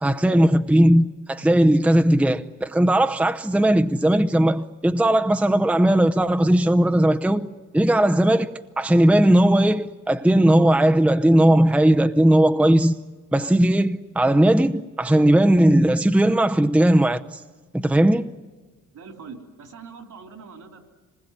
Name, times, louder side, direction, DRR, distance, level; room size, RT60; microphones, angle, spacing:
voice 1, 0.0-7.5 7.7-12.9 13.3-17.4 17.7-18.3, right 1 dB, 5° right, 0.8 m, -18 dB
voice 2, 18.9-20.8, right 5 dB, 70° right, 3.4 m, -42 dB
25.5 x 20.5 x 9.7 m
cardioid pair, 75°, 32 cm